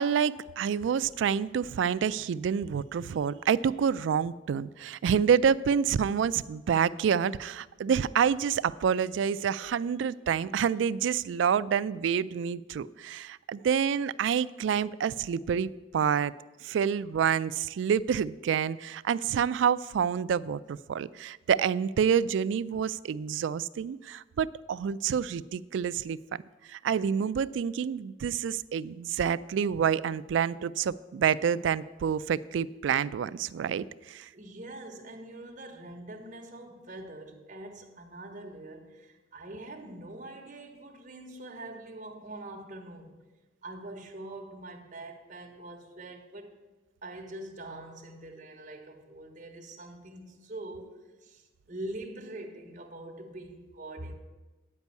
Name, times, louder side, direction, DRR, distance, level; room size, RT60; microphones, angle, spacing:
voice 1, 0.0-16.3 16.6-26.4 26.7-34.3, right 7 dB, 80° right, 0.3 m, -28 dB
voice 2, 34.3-43.2 43.6-46.5 47.0-54.1, right 1 dB, 45° right, 1.2 m, -44 dB
9.5 x 5.3 x 8.2 m
head